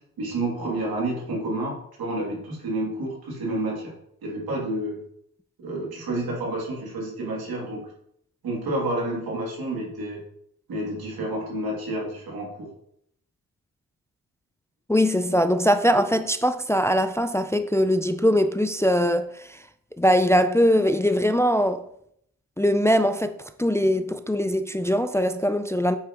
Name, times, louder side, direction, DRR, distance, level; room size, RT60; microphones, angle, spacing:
voice 1, 0.2-3.9 4.2-5.0 5.6-7.8 8.4-10.2 10.7-12.7, right 1 dB, 80° right, 2.9 m, -29 dB
voice 2, 14.9-19.6 20.0-21.8 22.6-26.0, equal, 10° left, 0.5 m, -21 dB
8.5 x 5.5 x 3.0 m
supercardioid pair, 50°, 36 cm